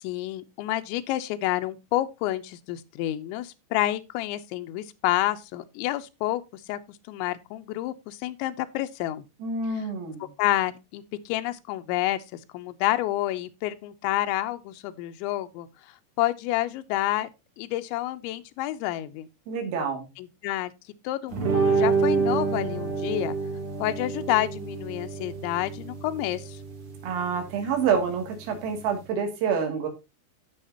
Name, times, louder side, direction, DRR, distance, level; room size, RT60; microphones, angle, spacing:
voice 1, 0.0-9.2 9.8-9.9 10.4-12.2 12.5-15.7 16.2-17.3 17.6-19.3 20.2-20.7 21.0-23.4 23.8-26.6, left 15 dB, 80° left, 2.8 m, -29 dB
voice 2, 9.4-10.3 19.5-20.1 27.0-29.9, right 6 dB, 80° right, 5.1 m, -27 dB
sound 1, 21.3-29.0, right 5 dB, 60° right, 1.4 m, -28 dB
16.5 x 5.8 x 2.8 m
omnidirectional pair, 5.9 m